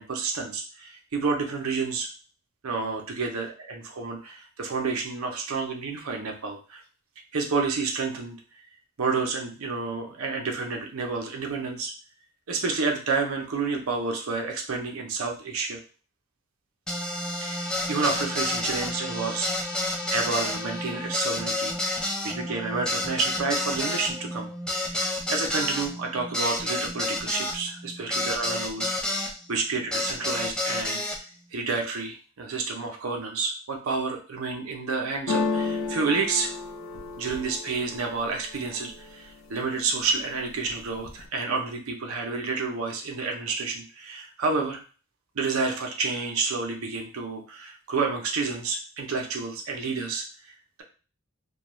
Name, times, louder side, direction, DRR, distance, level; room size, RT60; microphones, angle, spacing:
voice 1, 0.0-2.1 2.6-6.8 7.3-8.4 9.0-11.9 12.5-15.8 17.4-19.6 20.1-24.5 24.8-25.0 25.3-28.9 29.2-31.0 31.5-36.5 37.2-44.8 45.3-50.2, right 4 dB, 85° right, 2 dB, 0.6 m, -30 dB
sound 1, 16.9-29.3 29.9-31.2, left 1 dB, 5° left, 0.4 m, -30 dB
sound 2, 35.3-39.1 39.6-40.2 40.5-41.3, left 4 dB, 70° left, 0.5 m, -32 dB
2.3 x 2.2 x 3.0 m, 0.37 s
head